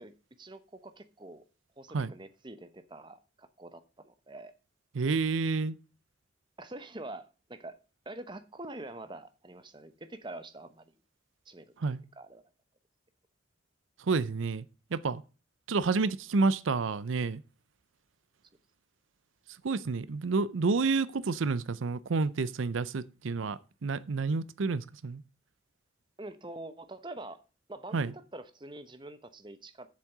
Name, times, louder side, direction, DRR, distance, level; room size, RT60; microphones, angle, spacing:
voice 1, 0.0-1.4 1.8-4.5 6.6-7.8 8.1-10.9 11.5-11.9 12.2-12.4 26.2-27.4 27.7-29.9, right 2 dB, 25° right, 0.9 m, -45 dB
voice 2, 4.9-5.7 11.8-12.0 14.0-14.7 14.9-15.2 15.7-17.4 19.6-25.2 27.9-28.1, right 4 dB, 85° right, 0.6 m, -29 dB
7.5 x 7.3 x 6.6 m
head